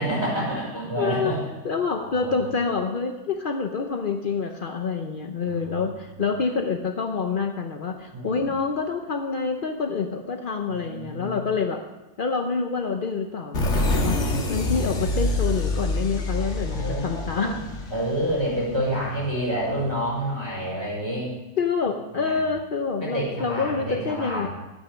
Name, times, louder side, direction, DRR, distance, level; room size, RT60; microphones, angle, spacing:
voice 1, 0.0-1.4 1.8-2.4 5.5-6.0 8.1-8.5 10.7-11.5 14.6-14.9 16.7-21.3 22.1-22.4 23.0-24.5, right 1 dB, 15° right, -5 dB, 5.7 m, -29 dB
voice 2, 1.0-1.3 1.6-11.8 12.2-17.6 21.6-24.5, left 5 dB, 70° left, 4 dB, 0.5 m, -27 dB
sound 1, 13.5-19.1, left 2 dB, 40° left, 1.7 m, -26 dB
12.0 x 9.2 x 6.2 m, 1.0 s
omnidirectional pair, 2.0 m